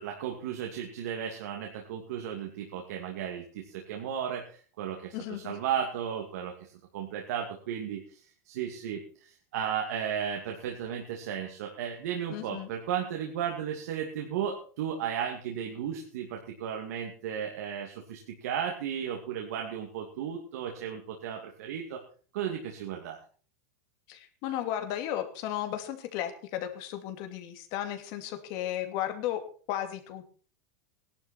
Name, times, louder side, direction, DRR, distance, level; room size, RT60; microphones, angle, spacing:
voice 1, 0.0-8.0 8.5-22.0 22.3-23.2, right 8 dB, 75° right, 1 dB, 2.5 m, -35 dB
voice 2, 5.1-5.5 12.3-12.7 24.1-29.4 29.7-30.3, left 11 dB, 50° left, 7 dB, 2.6 m, -34 dB
17.5 x 11.5 x 4.3 m, 0.41 s
supercardioid pair, 140°, 9 cm